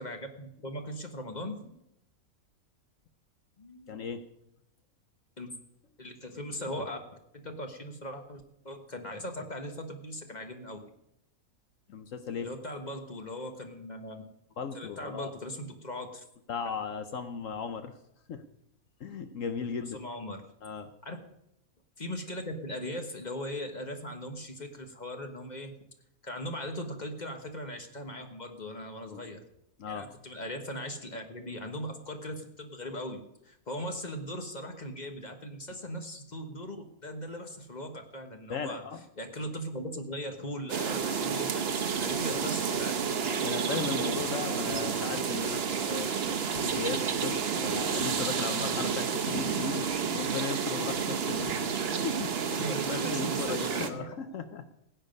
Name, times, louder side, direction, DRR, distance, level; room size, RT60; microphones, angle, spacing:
voice 1, 0.0-1.8 3.6-4.0 5.4-5.5 6.0-7.0 7.3-10.8 12.4-14.2 14.7-16.2 19.9-20.4 21.0-21.2 22.0-25.7 26.2-29.4 29.9-38.8 39.2-41.6 41.9-42.9 52.4-54.2, equal, 30° left, 5 dB, 1.3 m, -39 dB
voice 2, 3.9-4.2 11.9-12.5 14.6-15.3 16.5-17.9 18.3-18.4 19.0-20.0 20.6-20.9 29.0-29.2 29.8-30.0 38.5-39.0 42.2-42.5 43.4-52.6 52.9-54.6, left 6 dB, 65° left, 9 dB, 1.1 m, -37 dB
sound 1, 40.7-53.9, right 6 dB, 50° right, 1.0 m, -30 dB
16.0 x 9.1 x 5.3 m, 0.80 s
omnidirectional pair, 1.5 m